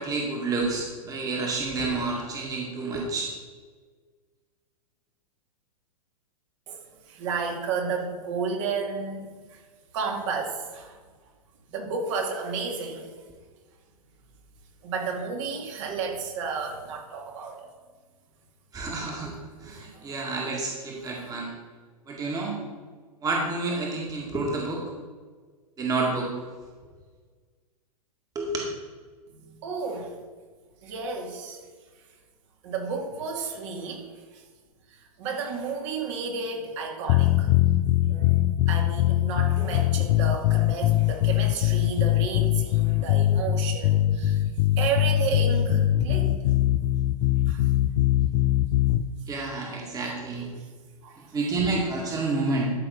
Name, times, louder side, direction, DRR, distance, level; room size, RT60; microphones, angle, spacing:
voice 1, 0.0-3.3 18.7-21.6 22.1-22.6 23.2-24.8 25.8-26.3 28.4-28.5 49.3-50.5 51.3-52.7, right 3 dB, 20° right, -1 dB, 1.9 m, -29 dB
voice 2, 7.1-9.2 9.9-11.0 11.7-13.1 14.8-17.7 18.7-18.8 19.7-20.0 29.6-30.1 30.8-31.6 32.6-34.0 34.3-34.4 34.9-37.5 38.0-38.4 38.7-44.4 44.8-46.4 47.5-47.7 50.0-50.1 51.0-51.2, right 5 dB, 50° right, 1 dB, 2.2 m, -32 dB
sound 1, 37.1-49.0, left 14 dB, 35° left, 0.4 m, -22 dB
12.5 x 5.8 x 4.0 m, 1.5 s
hypercardioid pair, 110°, 19 cm